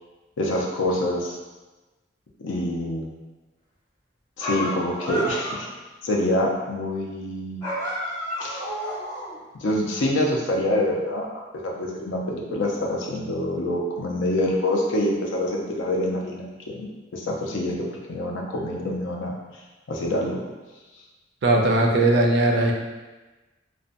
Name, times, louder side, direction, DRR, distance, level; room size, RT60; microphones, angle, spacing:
voice 1, 0.4-1.3 2.4-3.1 4.4-5.7 6.0-7.7 8.4-8.6 9.5-11.3 11.6-16.9 17.1-19.3 19.9-20.4, left 1 dB, 85° left, -1 dB, 0.5 m, -26 dB
sound 1, 4.4-5.7 7.6-9.4, equal, 20° left, 0.7 m, -30 dB
voice 2, 21.4-22.7, right 2 dB, 60° right, 1 dB, 0.4 m, -19 dB
2.6 x 2.1 x 2.5 m, 1.2 s
head